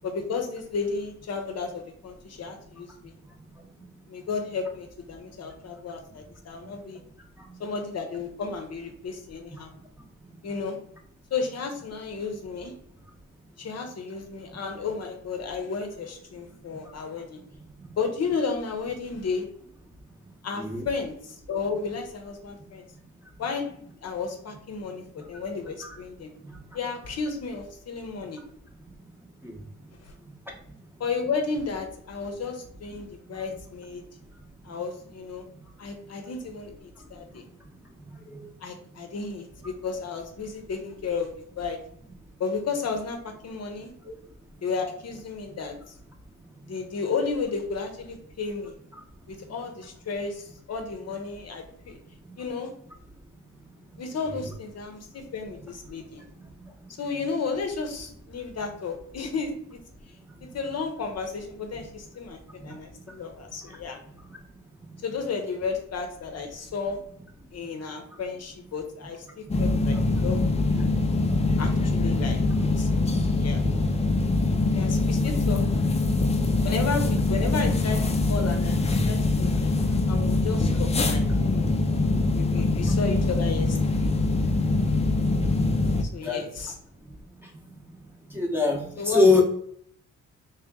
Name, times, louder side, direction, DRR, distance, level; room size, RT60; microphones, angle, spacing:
voice 1, 0.0-3.1 4.1-7.0 7.6-9.7 10.4-10.8 11.3-12.7 13.6-17.4 18.0-19.5 20.4-22.8 23.4-23.7 24.0-26.3 26.7-28.4 30.0-30.1 31.0-34.0 34.6-35.4 35.8-37.4 38.6-41.8 42.4-43.9 44.6-45.9 46.6-48.7 49.3-52.0 52.4-52.7 54.0-56.3 57.0-59.8 60.4-64.0 65.0-67.0 67.5-70.4 70.7-70.8 71.6-72.4 72.8-72.9 73.3-73.6 74.5-75.6 76.6-78.0 78.3-79.7 80.1-81.7 82.3-84.1 86.0-86.8 89.0-89.2, left 4 dB, 55° left, 5 dB, 0.7 m, -33 dB
voice 2, 20.6-20.9 29.4-29.6 38.3-38.5 73.5-73.6 86.2-86.4 88.3-89.4, left 3 dB, 5° right, 0 dB, 0.8 m, -22 dB
sound 1, 69.5-86.0, left 2 dB, 20° left, 0.4 m, -23 dB
3.4 x 2.8 x 3.5 m, 0.65 s
wide cardioid pair, 130°, 32 cm